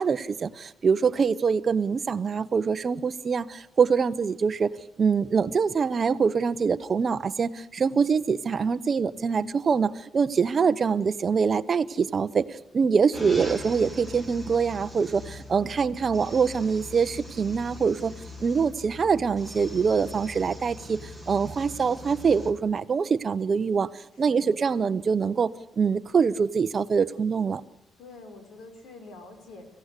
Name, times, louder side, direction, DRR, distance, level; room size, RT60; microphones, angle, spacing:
voice 1, 0.0-4.7 5.0-12.4 12.7-18.1 18.4-21.0 21.3-23.9 24.2-25.5 25.8-27.6, right 5 dB, 30° right, 12 dB, 0.8 m, -24 dB
sound 1, 13.1-22.5, left 2 dB, 10° left, 2.7 m, -41 dB
voice 2, 24.1-24.6 28.0-29.7, left 3 dB, 85° left, 7 dB, 4.9 m, -46 dB
25.0 x 16.0 x 8.3 m, 0.93 s
cardioid pair, 170°, 0 cm